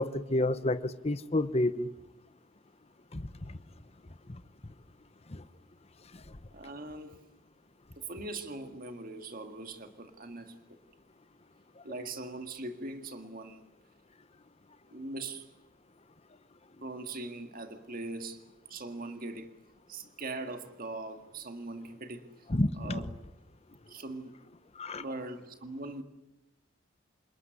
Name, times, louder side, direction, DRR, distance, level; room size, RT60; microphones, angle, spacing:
voice 1, 0.0-1.9 3.1-3.3 5.3-5.4 22.5-23.0 24.8-25.0, left 1 dB, 30° left, 1.0 m, -29 dB
voice 2, 6.5-7.2 8.1-10.8 11.8-13.6 14.9-15.5 16.8-18.4 18.7-19.5 19.9-22.3 22.7-23.1 23.9-24.3 24.9-26.0, right 2 dB, 45° right, 2.1 m, -41 dB
28.5 x 20.5 x 9.8 m
head